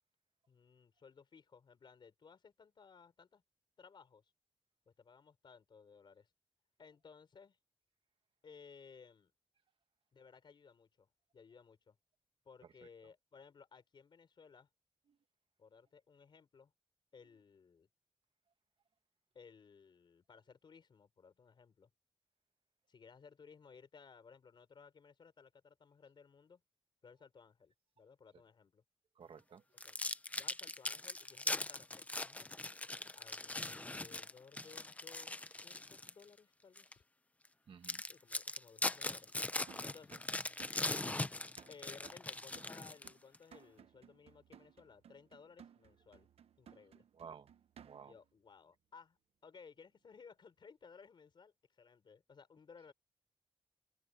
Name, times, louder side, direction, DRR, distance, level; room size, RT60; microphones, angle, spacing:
voice 1, 0.5-3.4 3.8-4.3 4.9-6.3 6.8-7.6 8.4-9.3 10.1-12.0 12.4-14.7 15.6-16.7 17.1-17.9 19.3-21.9 22.9-26.6 27.0-28.8 29.7-30.0 30.4-32.5 33.1-37.0 38.1-39.4 39.8-40.3 41.7-46.3 46.6-47.0 48.0-52.9, left 5 dB, 50° left, 4.1 m, -59 dB
voice 2, 29.2-29.6 37.7-38.0 41.3-41.6 47.1-47.5 47.8-48.2, right 6 dB, 65° right, 1.9 m, -54 dB
sound 1, 29.8-36.2 36.8-36.9 37.5-37.6 37.8-43.4, left 2 dB, 15° left, 0.6 m, -40 dB
sound 2, 39.7-48.3, right 9 dB, 85° right, 0.8 m, -61 dB
open air
wide cardioid pair, 145°, 10 cm